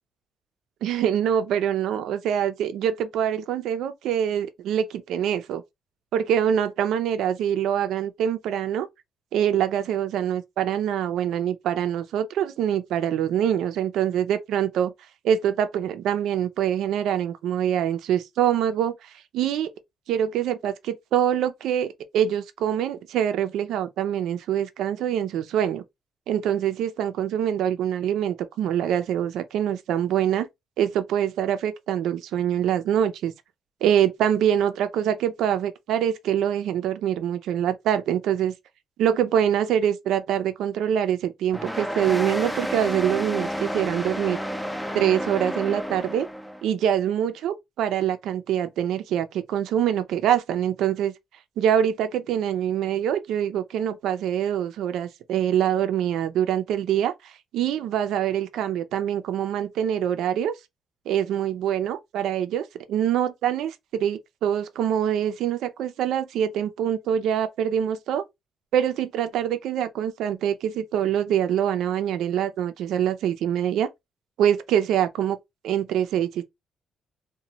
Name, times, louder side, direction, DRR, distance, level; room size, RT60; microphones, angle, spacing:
voice 1, 0.8-5.6 6.1-8.9 9.3-14.9 15.2-18.9 19.3-19.7 20.1-25.8 26.3-30.5 30.8-33.3 33.8-38.5 39.0-44.4 44.9-46.3 46.6-51.1 51.6-60.5 61.1-68.2 68.7-73.9 74.4-75.4 75.6-76.4, right 9 dB, 80° right, 0.4 m, -24 dB
sound 1, 41.5-46.6, equal, 5° left, 0.4 m, -30 dB
3.0 x 2.1 x 2.7 m
cardioid pair, 90°, 0 cm